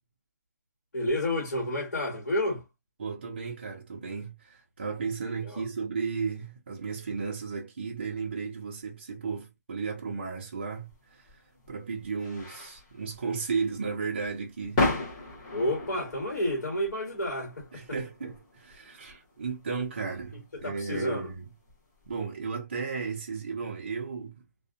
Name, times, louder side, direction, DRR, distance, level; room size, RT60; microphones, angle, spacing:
voice 1, 0.9-2.6 5.4-5.6 15.5-17.8 20.6-21.3, left 1 dB, 65° left, 1.2 m, -30 dB
voice 2, 3.0-11.3 11.7-14.9 17.7-21.5 22.1-24.4, right 5 dB, 35° right, 0.5 m, -34 dB
sound 1, 10.8-22.2, left 2 dB, 15° left, 0.8 m, -37 dB
2.5 x 2.1 x 2.5 m
hypercardioid pair, 180°, 10 cm